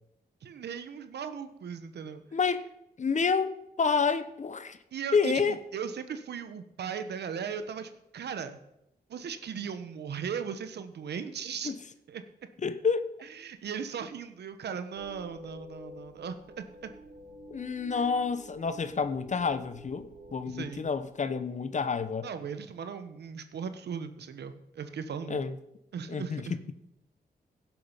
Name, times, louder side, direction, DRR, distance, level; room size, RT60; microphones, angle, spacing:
voice 1, 0.4-2.2 4.9-8.6 9.1-11.7 12.1-12.2 13.3-16.9 17.9-18.0 20.5-20.9 22.2-25.4 25.9-26.5, right 7 dB, 80° right, 10 dB, 1.1 m, -38 dB
voice 2, 2.3-2.6 3.0-4.8 5.1-5.6 11.6-11.8 12.6-13.0 17.5-22.3 25.3-25.6 26.1-26.6, left 5 dB, 45° left, 13 dB, 1.0 m, -29 dB
sound 1, 14.9-20.9, equal, 45° right, 3.6 m, -49 dB
16.5 x 7.7 x 5.7 m, 0.85 s
cardioid pair, 80°, 17 cm